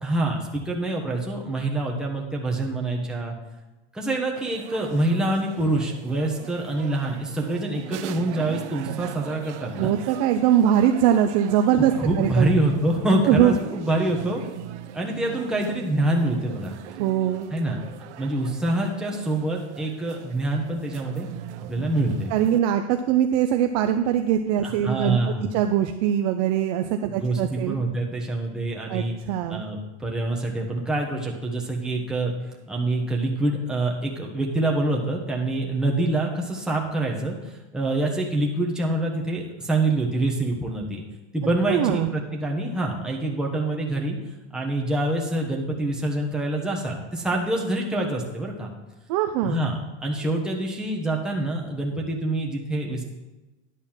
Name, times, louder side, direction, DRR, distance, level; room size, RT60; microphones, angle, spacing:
voice 1, 0.0-3.3 3.9-9.9 12.0-14.4 14.9-16.8 17.5-17.8 18.2-21.3 21.7-22.3 24.6-25.5 27.1-29.2 29.5-32.3 32.7-41.0 41.3-44.2 44.5-48.7 49.4-49.7 50.0-53.0, right 2 dB, ahead, -2 dB, 1.2 m, -26 dB
sound 1, 4.4-22.6, right 13 dB, 80° right, 0.6 m, -40 dB
voice 2, 9.8-12.5 13.3-13.5 17.0-17.5 22.3-25.2 25.5-27.8 28.9-29.6 41.7-42.1 49.1-49.6, right 10 dB, 40° right, 7 dB, 0.4 m, -22 dB
10.5 x 4.2 x 7.3 m, 1.1 s
supercardioid pair, 150°, 34 cm